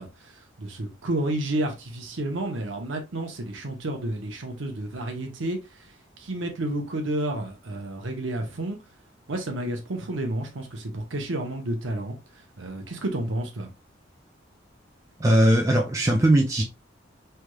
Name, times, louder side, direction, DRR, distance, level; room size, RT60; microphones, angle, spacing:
voice 1, 0.0-5.9 6.2-8.8 9.3-12.2 12.6-13.7, right 1 dB, 80° right, 0.8 m, -31 dB
voice 2, 15.2-16.6, right 1 dB, 15° right, 0.4 m, -19 dB
3.3 x 3.1 x 2.3 m
head